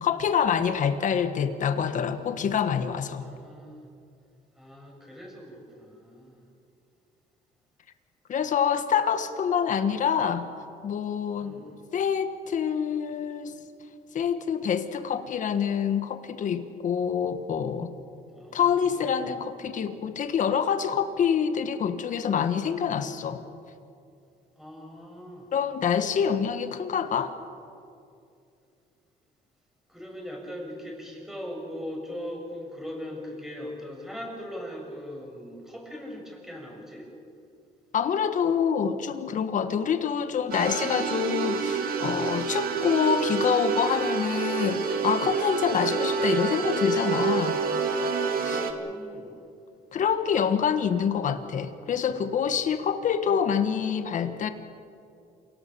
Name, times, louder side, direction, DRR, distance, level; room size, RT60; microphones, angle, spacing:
voice 1, 0.0-3.2 8.3-10.5 10.8-11.6 11.9-13.6 14.1-17.9 18.5-23.4 25.5-27.3 37.9-47.6 47.9-48.0 48.4-48.6 49.9-54.5, left 7 dB, 50° left, 9 dB, 1.5 m, -26 dB
voice 2, 3.2-3.8 4.5-6.4 11.4-11.8 18.3-19.3 24.6-25.5 29.9-37.1 48.4-49.4, equal, ahead, -1 dB, 6.5 m, -40 dB
sound 1, 40.5-48.7, right 5 dB, 60° right, 2.2 m, -27 dB
28.0 x 18.0 x 7.0 m, 2.5 s
cardioid pair, 110°, 17 cm